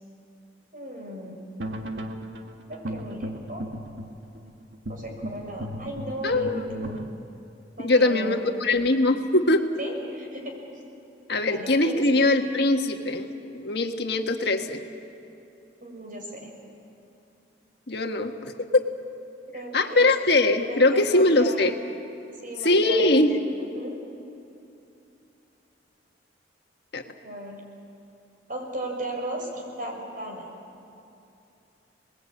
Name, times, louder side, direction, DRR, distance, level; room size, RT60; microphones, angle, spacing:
voice 1, 0.7-1.4 2.6-3.6 4.4-4.5 4.9-7.0 7.8-8.6 9.8-10.6 11.3-12.5 15.8-16.5 19.5-20.1 20.6-21.8 22.4-23.2 23.6-24.0 27.0-27.6 28.5-30.5, right 1 dB, 50° right, 1 dB, 5.5 m, -36 dB
sound 1, 1.6-7.1, equal, 75° right, 1.6 m, -36 dB
voice 2, 6.2-6.7 7.8-9.6 11.3-13.3 13.5-14.8 17.9-18.8 19.7-21.7 22.6-23.3 26.9-27.0, left 2 dB, 60° left, 4 dB, 1.5 m, -22 dB
29.5 x 20.5 x 8.6 m, 2.7 s
head